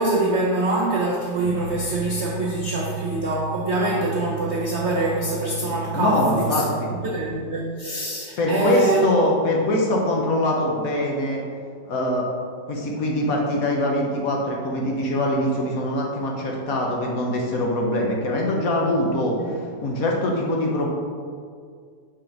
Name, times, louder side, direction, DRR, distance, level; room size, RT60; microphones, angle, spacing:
voice 1, 0.0-6.7 7.0-9.3 19.4-19.5, right 2 dB, 70° right, -2 dB, 0.6 m, -24 dB
sound 1, 1.4-7.5, right 7 dB, 30° left, 1.5 m, -34 dB
voice 2, 5.9-6.9 8.4-11.4 11.8-12.3 12.7-19.4 19.8-20.9, left 1 dB, 60° left, -1 dB, 1.1 m, -23 dB
5.2 x 3.6 x 5.7 m, 2.1 s
omnidirectional pair, 2.0 m